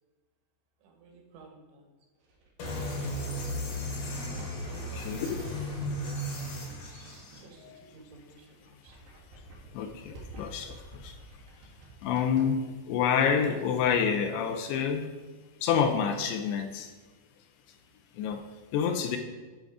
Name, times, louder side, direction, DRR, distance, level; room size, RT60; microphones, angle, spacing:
voice 1, 0.8-1.8 4.6-5.7 5.9-9.1 11.1-11.2 17.8-17.9, right 4 dB, 90° right, 2 dB, 3.6 m, -53 dB
sound 1, 2.2-6.0 6.7-8.0 8.3-12.4, right 1 dB, 60° right, 3.2 m, -50 dB
sound 2, 2.6-7.4, equal, 55° left, 3.0 m, -35 dB
voice 2, 5.0-5.3 7.6-7.8 9.7-11.2 12.0-15.1 15.6-16.9 18.1-18.5 18.7-19.2, left 7 dB, 80° left, 6 dB, 2.5 m, -28 dB
11.5 x 3.9 x 4.8 m, 1.3 s
omnidirectional pair, 5.0 m